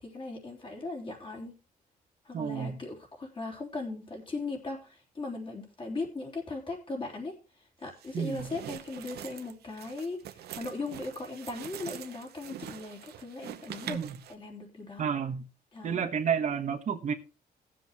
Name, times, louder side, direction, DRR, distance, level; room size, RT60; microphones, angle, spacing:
voice 1, 0.0-1.6 2.2-14.0 14.3-15.1 15.7-16.0, left 3 dB, 35° left, 3.6 m, -38 dB
voice 2, 2.3-2.8 8.1-8.5 13.9-14.2 15.0-15.4 15.8-17.1, right 7 dB, 50° right, 1.3 m, -30 dB
sound 1, 8.0-14.3, right 11 dB, 85° right, 0.9 m, -44 dB
18.0 x 7.7 x 3.0 m
cardioid pair, 130°, 16 cm